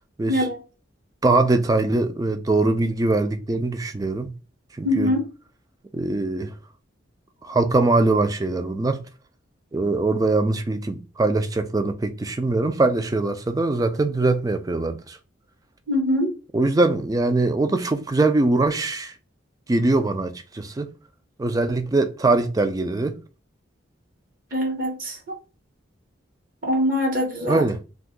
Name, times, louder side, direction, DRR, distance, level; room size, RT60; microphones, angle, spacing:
voice 1, 1.2-4.3 4.8-5.1 5.9-6.5 7.4-9.0 9.7-15.2 16.5-19.1 19.7-20.9 21.4-23.2 27.5-27.8, right 2 dB, 20° right, 0.3 m, -22 dB
voice 2, 4.8-5.2 15.9-16.3 24.5-25.3 26.6-27.6, left 1 dB, 45° right, 1.0 m, -23 dB
2.6 x 2.3 x 3.6 m
head